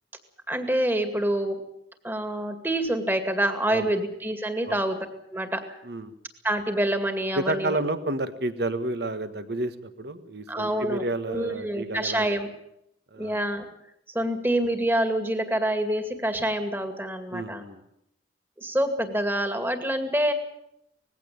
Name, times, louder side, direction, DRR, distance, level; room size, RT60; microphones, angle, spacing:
voice 1, 0.5-1.6 2.0-5.1 5.3-5.6 6.4-7.8 10.5-12.5 13.2-13.7 14.1-17.6 18.6-20.3, right 1 dB, 10° right, 7 dB, 2.2 m, -26 dB
voice 2, 5.8-6.1 7.4-12.3 13.1-13.4 17.3-17.8, right 2 dB, 60° right, 10 dB, 1.6 m, -30 dB
20.0 x 16.5 x 8.8 m, 0.79 s
head